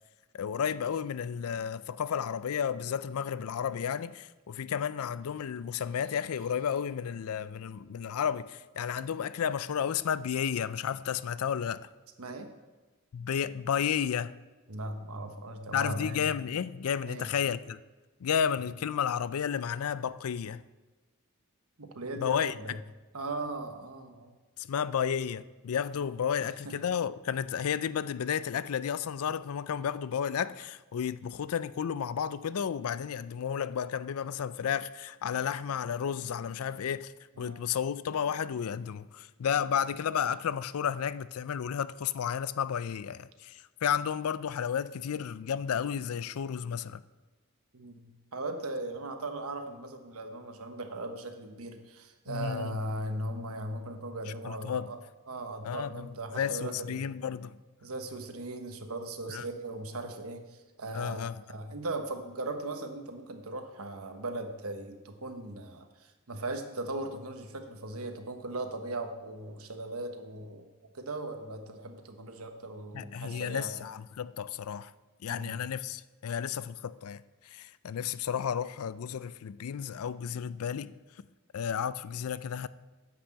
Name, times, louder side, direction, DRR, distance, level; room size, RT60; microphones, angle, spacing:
voice 1, 0.3-11.9 13.1-14.4 15.7-17.8 18.2-20.6 22.2-22.8 24.6-37.1 37.4-47.0 52.3-52.8 54.4-54.9 55.6-57.6 59.3-59.5 60.9-61.4 72.9-74.9 75.2-80.9 81.5-82.7, left 8 dB, 80° left, 0.4 m, -32 dB
voice 2, 12.2-12.5 14.7-16.3 17.1-17.3 21.8-22.8 23.1-24.3 26.6-26.7 37.4-37.6 47.7-55.0 55.3-57.0 57.8-70.7 70.9-73.7 75.3-75.6, right 2 dB, 80° right, 1.2 m, -38 dB
9.9 x 6.1 x 7.4 m
head